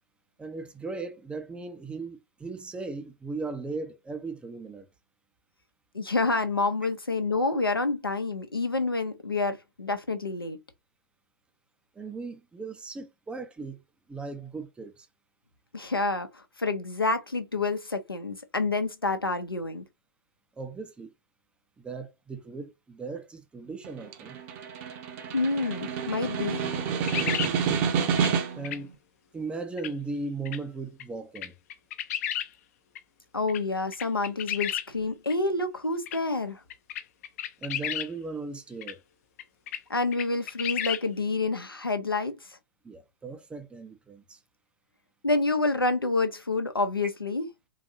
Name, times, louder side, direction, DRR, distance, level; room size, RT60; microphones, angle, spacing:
voice 1, 0.4-4.9 12.0-13.8 14.1-15.1 20.6-21.1 21.8-24.4 28.5-28.9 29.3-31.5 37.6-39.0 42.8-44.4, right 3 dB, 10° right, 0.5 m, -37 dB
voice 2, 5.9-10.6 15.7-19.8 25.3-26.7 33.3-36.6 39.9-42.6 45.2-47.5, left 3 dB, 85° left, 0.8 m, -28 dB
Snare drum, 23.8-28.8, right 7 dB, 35° right, 0.8 m, -29 dB
sound 1, 27.1-27.5 28.2-28.3 28.6-28.8 29.8-29.9 30.4-30.6 31.0-31.1 31.3-32.5 32.9-33.0 33.5-33.6 33.9-34.8 35.3-35.4 36.1-36.2 36.7-38.1 38.8-38.9 39.4-39.8 40.1-41.0, left 11 dB, 45° left, 0.5 m, -32 dB
3.9 x 2.6 x 2.7 m
figure-of-eight pair, 110°, 12 cm